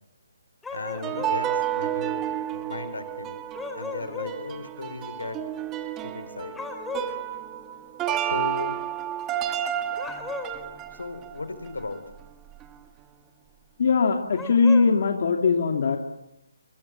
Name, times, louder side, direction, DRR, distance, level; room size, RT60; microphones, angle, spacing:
sound 1, 0.6-1.4 3.5-4.4 6.6-7.2 9.9-10.7 14.3-14.9, left 3 dB, 5° left, 3.8 m, -35 dB
voice 1, 0.7-3.4 3.7-5.4 6.0-6.6 8.2-8.8 10.9-12.0, left 3 dB, 80° left, 10 dB, 4.2 m, -36 dB
sound 2, 0.9-12.2 12.5-12.7, right 11 dB, 15° right, 1.5 m, -31 dB
voice 2, 13.8-16.0, left 5 dB, 50° left, 3 dB, 2.6 m, -20 dB
26.0 x 26.0 x 7.5 m, 0.81 s
figure-of-eight pair, 145°, 0 cm